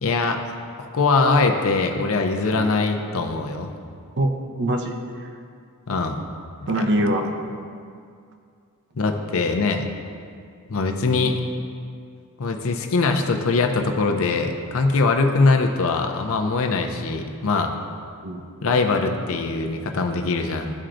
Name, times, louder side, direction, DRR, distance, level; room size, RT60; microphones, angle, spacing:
voice 1, 0.0-0.4 0.8-3.7 5.9-6.2 6.8-6.9 9.0-9.9 10.7-11.3 12.4-17.7 18.6-20.7, left 3 dB, 65° left, 4 dB, 0.6 m, -22 dB
voice 2, 4.2-5.3 6.7-7.3 11.2-11.4 18.2-18.4, right 1 dB, 55° right, 4 dB, 0.6 m, -24 dB
12.5 x 4.4 x 2.6 m, 2.3 s
head